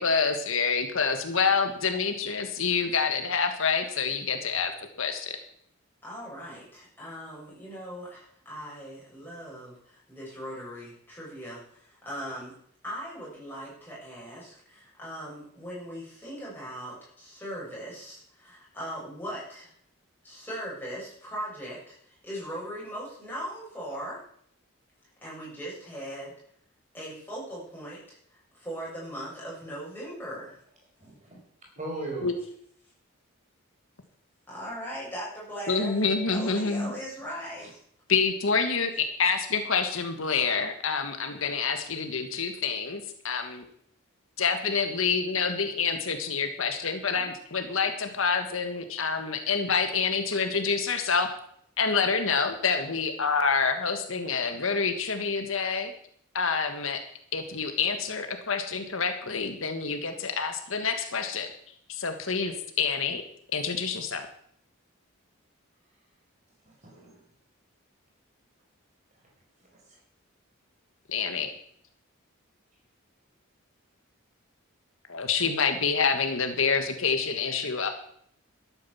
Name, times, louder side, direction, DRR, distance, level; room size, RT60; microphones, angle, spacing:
voice 1, 0.0-5.3 32.2-32.3 35.7-36.9 38.1-43.6 44.4-51.3 51.8-55.9 56.3-57.0 57.3-61.5 61.9-63.2 63.5-64.3 71.1-71.5 75.1-77.9, left 5 dB, 70° left, 7 dB, 1.5 m, -27 dB
voice 2, 6.0-12.5 12.8-19.7 20.2-24.2 25.2-26.3 26.9-30.6 34.5-37.7, equal, 10° left, -7 dB, 7.6 m, -39 dB
voice 3, 31.0-31.4 31.8-32.3 37.6-37.7 47.1-47.3 66.6-67.2, right 2 dB, 35° right, -1 dB, 4.8 m, -38 dB
12.5 x 9.0 x 7.2 m, 0.66 s
head